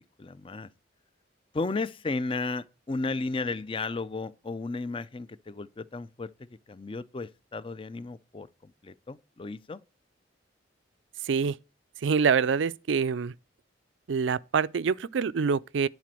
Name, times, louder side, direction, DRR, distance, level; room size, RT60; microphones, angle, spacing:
voice 1, 0.2-0.7 1.5-6.3 6.7-9.8, left 3 dB, 30° left, 0.4 m, -34 dB
voice 2, 11.2-11.6 12.0-13.3 14.1-15.9, right 6 dB, 85° right, 0.4 m, -25 dB
10.5 x 4.2 x 7.5 m
head